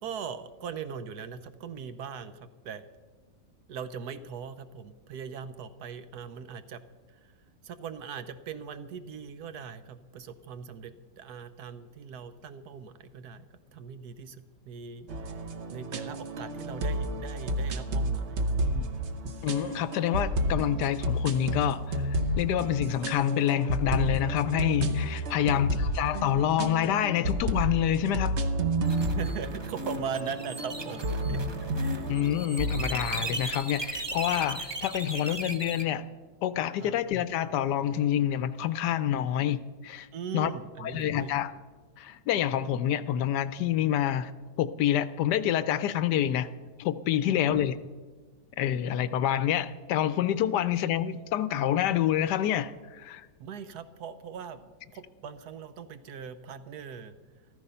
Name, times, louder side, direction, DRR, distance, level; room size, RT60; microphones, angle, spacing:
voice 1, 0.0-2.8 3.7-6.8 7.1-7.3 7.6-13.4 13.7-15.1 15.7-18.9 25.2-25.5 29.0-31.4 31.7-32.2 36.8-36.9 40.1-41.3 47.2-47.8 53.4-54.6 54.9-57.1, right 7 dB, 65° right, 1.1 m, -40 dB
sound 1, 15.1-33.4, right 1 dB, 50° right, 0.9 m, -31 dB
voice 2, 19.4-28.4 32.1-36.0 36.4-40.1 40.3-40.5 40.8-41.5 42.0-44.3 44.6-46.5 46.8-47.8 48.6-53.3, left 10 dB, 75° left, 1.1 m, -27 dB
sound 2, 28.8-35.8, right 2 dB, 25° right, 0.6 m, -37 dB
14.0 x 13.5 x 5.5 m
omnidirectional pair, 1.9 m